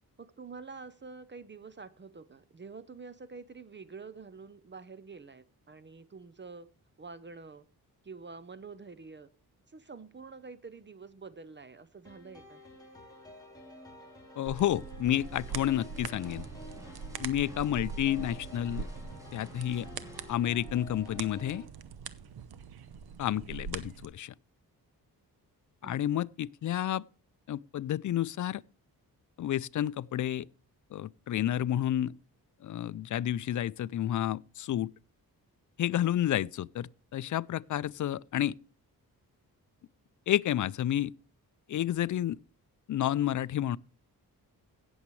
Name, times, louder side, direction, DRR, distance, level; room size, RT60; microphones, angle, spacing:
voice 1, 0.2-6.7 7.0-7.7 8.0-9.3 9.7-12.6 25.8-26.1, right 4 dB, 30° right, 0.7 m, -47 dB
sound 1, 12.0-21.6, left 1 dB, 10° left, 3.4 m, -50 dB
voice 2, 14.4-16.4 17.2-18.9 19.3-19.9 20.3-21.6 23.2-24.3 25.8-27.0 27.5-28.6 29.4-30.5 30.9-32.1 32.6-34.9 35.8-38.6 40.3-41.1 41.7-42.4 42.9-43.8, left 11 dB, 55° left, 0.5 m, -30 dB
sound 2, 14.5-24.1, right 6 dB, 80° right, 0.9 m, -42 dB
sound 3, 15.2-20.3, equal, 10° right, 2.1 m, -53 dB
17.0 x 7.2 x 3.1 m
cardioid pair, 95°, 37 cm